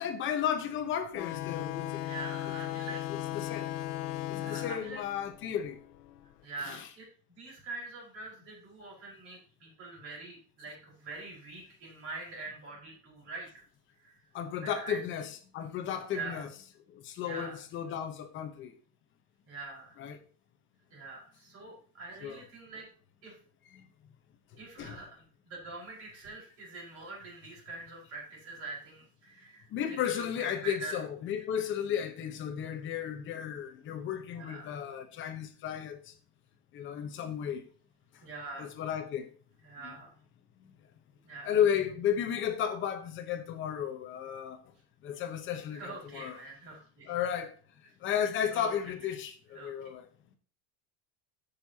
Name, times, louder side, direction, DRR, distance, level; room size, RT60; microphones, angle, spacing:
voice 1, 0.0-2.1 3.1-3.7 4.3-5.8 6.6-6.9 14.3-16.5 16.9-18.7 20.0-20.2 22.2-22.4 23.7-23.9 24.8-25.0 29.7-36.1 36.7-37.6 38.1-38.2 38.6-39.3 39.8-39.9 40.6-40.7 41.4-44.6 45.0-46.4 47.1-47.5 48.0-50.1, left 9 dB, 25° left, 1.1 m, -34 dB
sound 1, 1.2-6.3, left 14 dB, 70° left, 1.0 m, -37 dB
voice 2, 2.0-3.0 4.4-5.0 6.4-13.5 14.0-14.2 14.6-15.0 16.1-16.4 17.2-17.6 19.5-19.9 20.9-22.9 23.2-23.4 24.6-29.6 29.9-31.0 34.3-34.7 38.2-38.7 39.6-40.1 41.2-41.6 45.7-47.2 48.5-48.7 49.5-49.7, right 3 dB, 30° right, 5.3 m, -44 dB
15.5 x 6.9 x 2.9 m
supercardioid pair, 175°, 47 cm